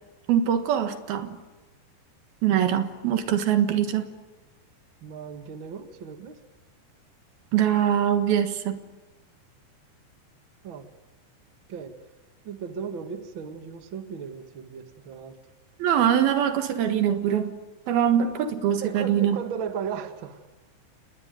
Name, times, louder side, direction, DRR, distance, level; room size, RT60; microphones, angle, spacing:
voice 1, 0.3-1.4 2.4-4.1 7.5-8.8 15.8-17.5 17.9-19.4, right 9 dB, 65° right, 8 dB, 3.1 m, -23 dB
voice 2, 5.0-6.4 10.6-10.9 11.7-12.0 12.4-15.4 18.8-20.4, right 7 dB, 80° right, 8 dB, 1.1 m, -36 dB
29.0 x 20.0 x 9.2 m, 1.2 s
omnidirectional pair, 5.1 m